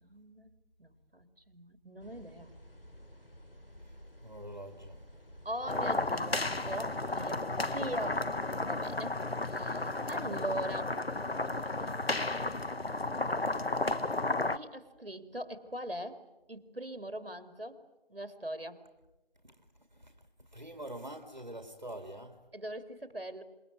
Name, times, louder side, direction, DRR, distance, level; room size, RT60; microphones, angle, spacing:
voice 1, 0.0-0.5 0.8-2.5 5.4-8.3 8.6-10.9 14.5-16.2 16.5-17.8 18.1-18.8 22.5-23.4, right 1 dB, 75° right, 2.4 m, -41 dB
sound 1, 2.0-8.4, equal, 65° left, 4.2 m, -53 dB
voice 2, 4.2-5.0 9.9-10.1 19.4-20.2 20.5-22.4, right 1 dB, 50° right, 2.1 m, -46 dB
sound 2, 5.7-14.6, left 2 dB, 85° left, 1.2 m, -33 dB
27.5 x 21.5 x 9.3 m
figure-of-eight pair, 180°, 30 cm